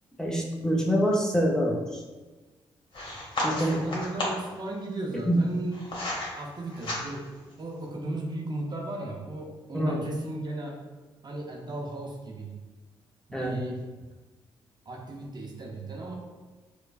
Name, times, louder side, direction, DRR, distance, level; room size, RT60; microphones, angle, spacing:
voice 1, 0.2-2.0 3.4-3.9 5.3-5.4 9.7-10.0 13.3-13.6, equal, 5° left, -2 dB, 0.7 m, -25 dB
sound 1, 2.9-4.5 5.3-6.3 6.7-7.4, left 1 dB, 50° left, 1.2 m, -33 dB
voice 2, 3.4-5.9 6.4-7.3 7.6-10.8 11.2-12.6 13.3-13.8 14.9-16.1, right 2 dB, 40° right, 0 dB, 0.6 m, -36 dB
4.4 x 2.3 x 2.4 m, 1.2 s
supercardioid pair, 55°, 11 cm